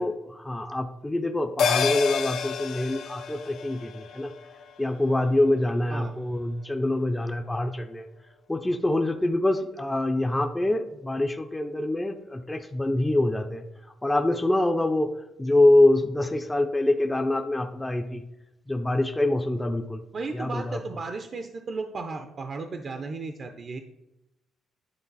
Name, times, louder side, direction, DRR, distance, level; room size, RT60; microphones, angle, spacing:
voice 1, 0.0-4.3 4.8-8.1 8.5-13.6 14.0-15.1 15.4-18.2 18.7-20.0 20.3-20.8, left 1 dB, 15° left, 5 dB, 0.5 m, -25 dB
sound 1, 1.6-6.3 6.6-6.7, left 7 dB, 80° left, 0.6 m, -31 dB
voice 2, 20.1-23.8, right 3 dB, 45° right, 6 dB, 0.6 m, -35 dB
9.7 x 3.8 x 4.0 m, 0.91 s
cardioid pair, 90°, 0 cm